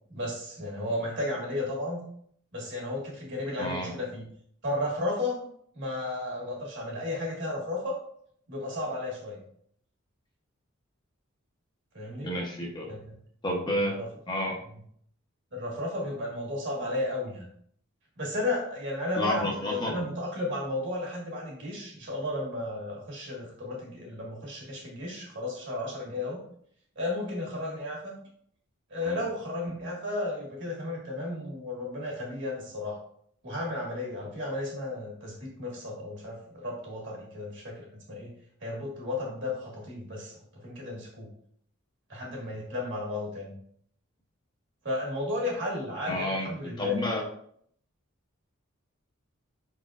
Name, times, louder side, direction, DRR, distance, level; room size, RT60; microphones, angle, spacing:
voice 1, 0.1-2.0 2.5-4.3 4.6-5.5 5.7-8.0 8.5-9.4 11.9-12.3 12.9-13.2 13.8-14.1 15.5-17.5 18.2-26.4 27.0-28.1 28.9-33.0 33.4-38.3 38.6-41.3 42.1-43.5 44.8-47.0, left 2 dB, 60° right, -2 dB, 1.8 m, -33 dB
voice 2, 3.6-3.9 12.2-12.9 13.4-14.0 14.3-14.6 19.2-20.0 29.0-29.2 46.1-47.2, left 1 dB, 20° left, -1 dB, 0.8 m, -30 dB
5.0 x 4.1 x 2.4 m, 0.64 s
head